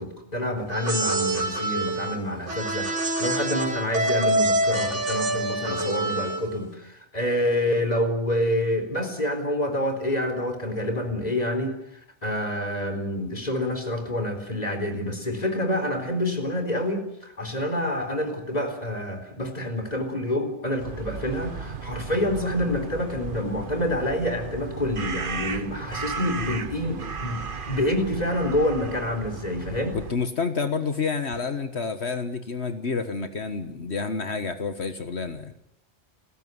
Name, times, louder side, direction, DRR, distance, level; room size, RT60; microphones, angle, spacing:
voice 1, 0.0-27.4 27.7-30.0, left 1 dB, 35° left, 7 dB, 4.2 m, -27 dB
sound 1, 0.7-6.6, right 1 dB, 85° right, 4.1 m, -26 dB
sound 2, 20.8-30.1, right 5 dB, 50° right, 1.2 m, -35 dB
voice 2, 29.9-35.5, left 4 dB, 70° left, 9 dB, 1.7 m, -29 dB
29.5 x 15.0 x 9.6 m, 0.78 s
omnidirectional pair, 1.2 m